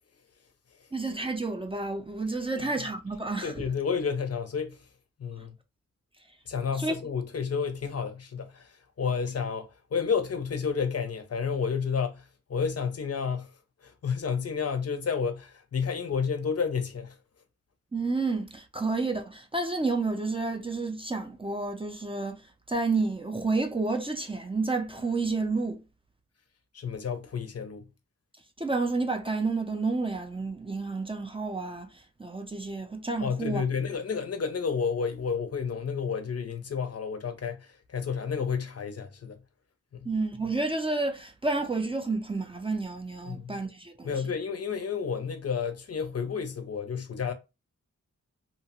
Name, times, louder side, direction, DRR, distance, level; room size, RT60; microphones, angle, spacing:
voice 1, 0.9-3.6 6.8-6.9 17.9-22.4 22.7-25.8 28.6-33.6 40.0-44.1, right 3 dB, 20° right, 0.4 m, -30 dB
voice 2, 3.4-4.9 5.2-5.5 6.5-13.5 13.8-17.2 26.7-27.8 33.2-39.4 39.9-40.1 43.3-43.6 44.0-47.3, left 6 dB, 55° left, 0.5 m, -31 dB
2.7 x 2.1 x 2.8 m
wide cardioid pair, 110°, 30 cm